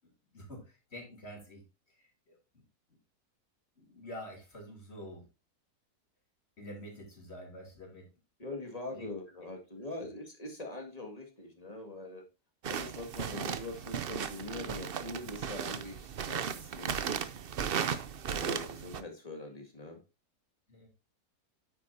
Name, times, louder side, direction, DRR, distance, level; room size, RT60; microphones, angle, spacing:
voice 1, 0.3-1.6 2.0-2.4 3.8-5.3 6.6-8.1 8.9-9.1 20.7-20.9, equal, 40° left, 1 dB, 3.5 m, -47 dB
voice 2, 8.4-12.2 12.7-17.1 18.3-20.0, left 2 dB, 25° left, 3 dB, 2.2 m, -43 dB
sound 1, 12.6-19.0, right 7 dB, 50° right, 0.7 m, -36 dB
9.3 x 8.5 x 2.7 m, 0.27 s
omnidirectional pair, 1.7 m